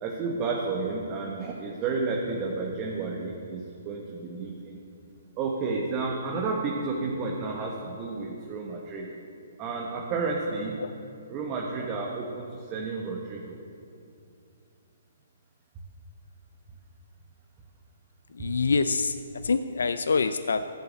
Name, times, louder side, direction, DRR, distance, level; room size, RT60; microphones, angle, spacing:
voice 1, 0.0-4.8 5.4-9.1 9.6-10.8 11.3-13.6, right 4 dB, 25° right, -2 dB, 1.4 m, -31 dB
voice 2, 18.3-20.6, left 4 dB, 80° left, 10 dB, 0.5 m, -26 dB
14.5 x 7.1 x 7.5 m, 2.5 s
hypercardioid pair, 145°, 0 cm